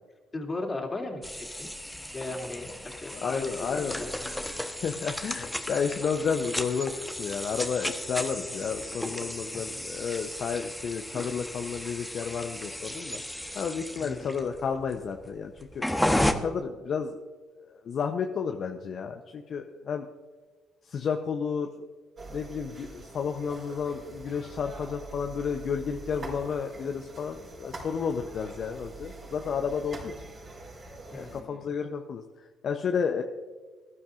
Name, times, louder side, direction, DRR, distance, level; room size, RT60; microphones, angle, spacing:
voice 1, 0.3-1.7 2.1-3.5 3.8-4.1 9.5-9.8 14.0-14.4 31.1-31.7, left 2 dB, 30° left, 1 dB, 2.8 m, -37 dB
sound 1, 1.2-16.3, left 1 dB, 5° left, 1.1 m, -34 dB
voice 2, 3.1-13.2 13.5-15.8 16.4-17.2 17.7-20.1 20.8-21.7 22.3-30.1 31.1-33.2, left 6 dB, 55° left, 4 dB, 0.8 m, -32 dB
sound 2, 22.2-31.4, right 2 dB, 40° right, 4.8 m, -44 dB
20.5 x 12.0 x 2.6 m, 1.4 s
hypercardioid pair, 55°, 0 cm